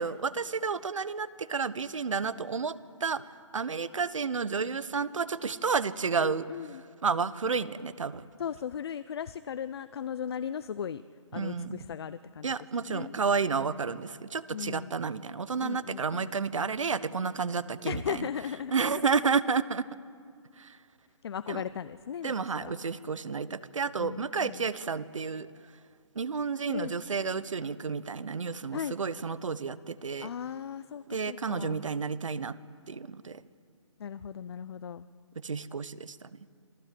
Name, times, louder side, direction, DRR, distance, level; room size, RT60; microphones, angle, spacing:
voice 1, 0.0-6.4 7.0-8.3 11.3-11.8 12.4-18.3 18.7-19.9 20.6-20.8 21.5-21.6 22.2-25.5 26.1-30.3 31.1-32.6 32.9-33.4 35.3-36.3, right 5 dB, 80° right, 16 dB, 1.2 m, -31 dB
voice 2, 6.2-6.8 8.4-11.0 11.3-12.5 12.9-13.1 14.5-14.9 15.6-16.3 17.9-19.1 21.2-22.7 24.0-24.7 26.7-26.9 28.7-29.0 30.2-31.8 34.0-35.1, left 8 dB, 55° left, 14 dB, 0.6 m, -37 dB
27.0 x 18.5 x 7.8 m, 2.2 s
hypercardioid pair, 155°, 16 cm